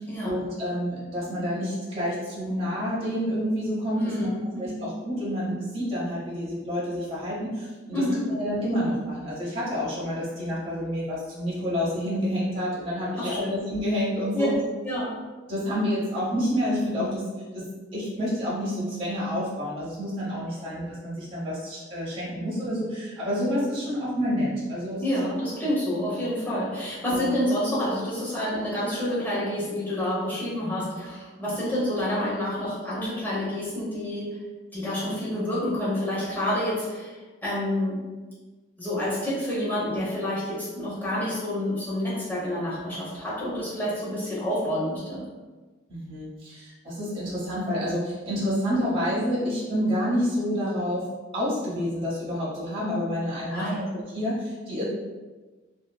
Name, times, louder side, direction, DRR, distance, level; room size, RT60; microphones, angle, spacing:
voice 1, 0.2-4.3 4.6-8.0 8.3-14.5 15.5-17.2 17.5-17.6 17.9-25.0 27.1-27.3 45.9-54.8, equal, 30° right, -10 dB, 1.0 m, -28 dB
voice 2, 4.0-4.7 7.9-8.2 13.2-13.5 14.3-14.5 14.8-15.2 20.6-20.7 25.0-34.4 34.7-38.0 38.8-45.2 53.5-53.9, left 1 dB, 10° left, -9 dB, 1.0 m, -28 dB
2.8 x 2.7 x 2.3 m, 1.3 s
head